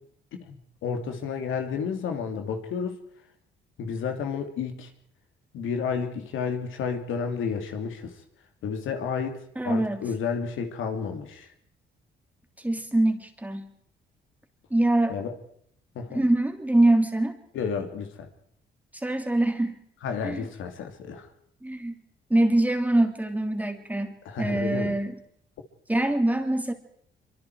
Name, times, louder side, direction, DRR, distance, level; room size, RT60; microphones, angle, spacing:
voice 1, 0.4-3.0 3.8-4.9 5.5-8.1 8.6-11.5 15.1-15.3 15.9-16.2 17.5-18.3 20.0-21.3 24.3-24.9, left 6 dB, 80° left, 5 dB, 2.6 m, -31 dB
voice 2, 9.6-10.1 12.6-13.7 14.7-15.2 16.1-17.4 19.0-19.8 20.2-20.5 21.6-21.9 22.3-25.2 25.9-26.7, right 1 dB, 10° right, 5 dB, 2.9 m, -24 dB
24.5 x 24.5 x 4.7 m, 0.68 s
cardioid pair, 90°, 20 cm